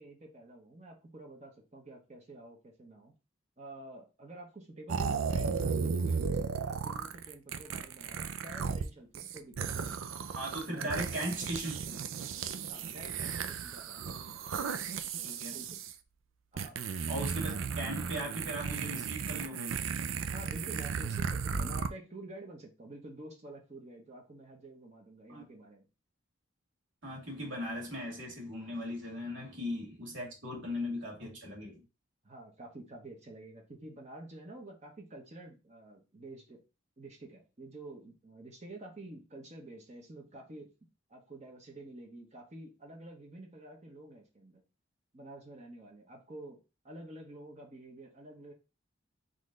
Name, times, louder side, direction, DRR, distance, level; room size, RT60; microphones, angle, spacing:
voice 1, 0.0-3.1 3.6-10.0 10.7-11.1 12.6-14.0 15.5-15.8 16.5-16.8 17.5-17.6 20.3-25.9 32.2-36.6 37.0-40.7 41.1-44.6 45.1-46.6 46.8-48.5, right 2 dB, 35° right, 1.0 m, -49 dB
sound 1, 4.9-8.9 9.1-15.9 16.6-21.9, right 6 dB, 85° right, 0.4 m, -35 dB
voice 2, 10.3-11.9 15.2-15.6 17.1-19.7 25.3-25.4 27.0-31.8, equal, 70° right, 2.3 m, -38 dB
4.1 x 3.2 x 3.8 m
head